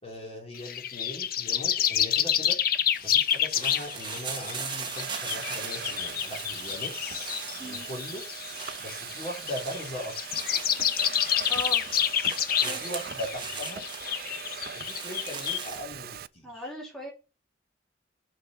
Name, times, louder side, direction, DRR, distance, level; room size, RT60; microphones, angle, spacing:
voice 1, 0.0-2.6 3.0-7.3 7.6-8.2 8.8-10.1 12.6-13.8 14.7-16.7, equal, 35° left, 0 dB, 3.3 m, -39 dB
sound 1, 0.5-15.7, left 10 dB, 55° left, 0.7 m, -29 dB
Domestic sounds home sounds, 2.4-2.8 3.6-16.3, right 9 dB, 55° right, 0.4 m, -42 dB
sound 2, 2.9-15.8, right 5 dB, 25° right, 1.4 m, -40 dB
voice 2, 11.5-11.9 12.6-12.8 16.4-17.1, left 1 dB, 5° left, -3 dB, 2.9 m, -38 dB
6.4 x 5.9 x 6.8 m, 0.30 s
head